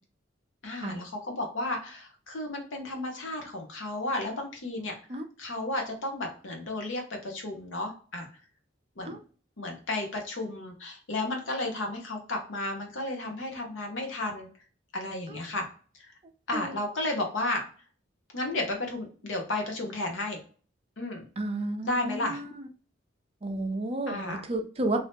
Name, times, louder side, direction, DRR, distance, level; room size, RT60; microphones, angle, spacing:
voice 1, 0.6-4.9 5.4-8.3 9.0-9.2 9.6-14.5 14.9-15.6 16.0-16.1 16.5-17.6 18.3-20.4 21.0-21.2 21.8-22.4 24.1-24.4, left 2 dB, 75° left, 2 dB, 0.9 m, -33 dB
voice 2, 21.4-22.6 23.4-25.1, right 1 dB, 30° right, 6 dB, 0.4 m, -32 dB
2.8 x 2.7 x 3.4 m, 0.40 s
head